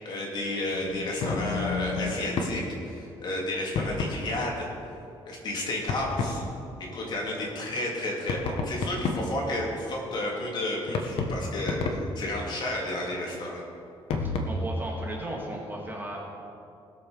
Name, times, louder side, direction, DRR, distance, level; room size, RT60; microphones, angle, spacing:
voice 1, 0.0-4.7 5.3-6.4 6.9-11.8 12.2-13.6, left 1 dB, 50° left, -2 dB, 2.9 m, -32 dB
sound 1, 0.7-2.6 3.7-4.2 5.9-6.4 8.3-9.4 10.9-12.2 14.1-14.4, left 4 dB, 75° left, 1.3 m, -30 dB
voice 2, 14.2-16.2, right 1 dB, 20° right, -2 dB, 1.9 m, -36 dB
20.0 x 7.1 x 5.1 m, 2.6 s
cardioid pair, 155°, 10 cm